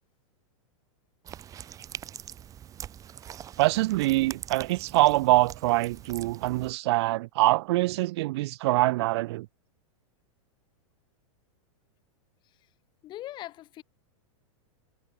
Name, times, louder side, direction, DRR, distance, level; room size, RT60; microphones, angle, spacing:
sound 1, 1.2-6.7, right 10 dB, 20° right, 2.0 m, -43 dB
voice 1, 3.6-9.5, right 19 dB, 50° right, 0.9 m, -24 dB
voice 2, 13.0-13.8, left 14 dB, 25° left, 2.5 m, -40 dB
supercardioid pair, 155°, 17 cm